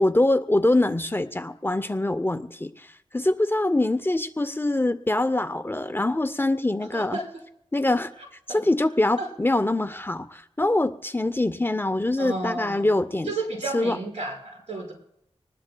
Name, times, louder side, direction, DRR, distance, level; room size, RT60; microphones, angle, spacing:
voice 1, 0.0-7.2 7.7-8.1 8.5-13.3 13.7-14.0, left 2 dB, 20° left, 10 dB, 0.6 m, -24 dB
voice 2, 6.9-7.3 8.5-8.6 9.2-9.3 12.2-12.9 13.2-14.9, right 2 dB, 85° right, -1 dB, 4.6 m, -32 dB
25.0 x 19.5 x 2.3 m, 0.77 s
wide cardioid pair, 80°, 11 cm